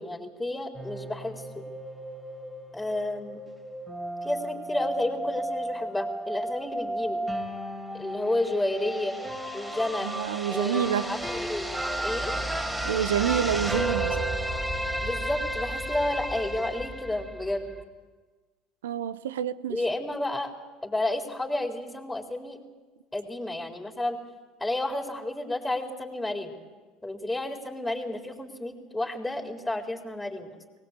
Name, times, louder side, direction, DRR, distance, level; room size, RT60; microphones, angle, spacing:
voice 1, 0.0-1.6 2.7-3.4 4.2-7.2 7.9-9.2 9.5-10.1 10.5-11.7 12.0-12.3 15.0-17.7 19.7-20.5 20.8-22.6 23.1-24.2 24.6-26.6 27.0-30.5, left 1 dB, 5° left, 4.1 m, -31 dB
sound 1, 0.7-17.8, right 1 dB, 15° right, 4.3 m, -33 dB
voice 2, 10.0-11.1 12.8-14.3 18.8-19.8, right 9 dB, 80° right, 0.8 m, -28 dB
22.5 x 19.0 x 8.4 m
hypercardioid pair, 70°, 0 cm